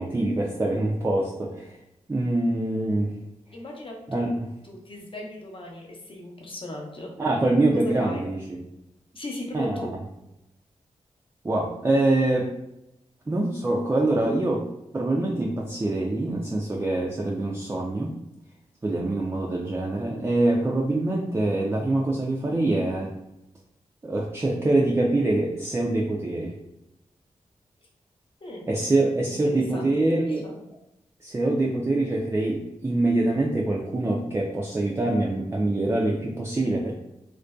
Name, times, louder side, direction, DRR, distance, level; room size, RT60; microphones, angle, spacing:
voice 1, 0.0-1.8 2.1-3.1 4.1-4.5 7.2-8.6 9.5-9.9 11.4-12.5 13.3-14.6 14.9-18.1 18.8-23.1 24.0-26.5 28.7-30.4 31.2-36.9, right 2 dB, 20° right, -2 dB, 0.3 m, -24 dB
voice 2, 3.5-4.3 4.6-7.1 7.7-8.2 9.1-10.0 28.4-28.7 29.2-30.6, left 1 dB, 45° left, -1 dB, 0.7 m, -37 dB
2.5 x 2.2 x 2.2 m, 0.88 s
cardioid pair, 65°, 13 cm